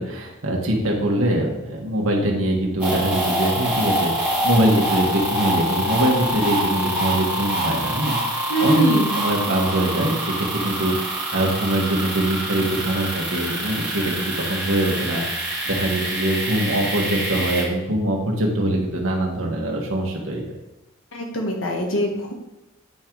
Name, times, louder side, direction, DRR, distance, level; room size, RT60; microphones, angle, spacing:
voice 1, 0.0-20.6, right 1 dB, 85° right, 0 dB, 1.4 m, -23 dB
sound 1, 2.8-17.6, right 1 dB, 5° right, 1.8 m, -25 dB
voice 2, 8.5-9.2 21.1-22.3, right 1 dB, 75° left, 1 dB, 1.4 m, -23 dB
8.6 x 3.8 x 4.6 m, 0.97 s
head